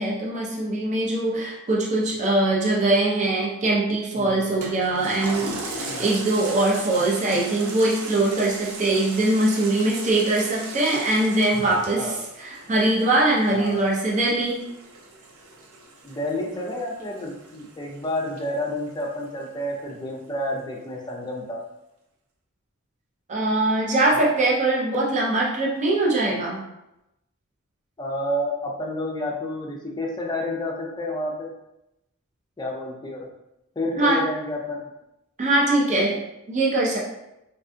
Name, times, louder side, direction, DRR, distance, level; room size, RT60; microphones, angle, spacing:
voice 1, 0.0-14.6 23.3-26.6 34.0-34.2 35.4-36.2 36.5-37.0, right 2 dB, 35° right, -3 dB, 0.5 m, -22 dB
voice 2, 4.2-4.5 5.4-5.5 5.9-6.1 12.0-12.2 13.5-13.8 16.0-21.6 24.1-24.3 28.0-31.5 32.6-33.3 33.8-34.9, left 1 dB, 20° left, -1 dB, 0.5 m, -30 dB
Toilet flush, 4.6-19.4 19.9-20.0, right 2 dB, 85° right, 0.5 m, -38 dB
3.5 x 2.2 x 2.5 m, 0.89 s
head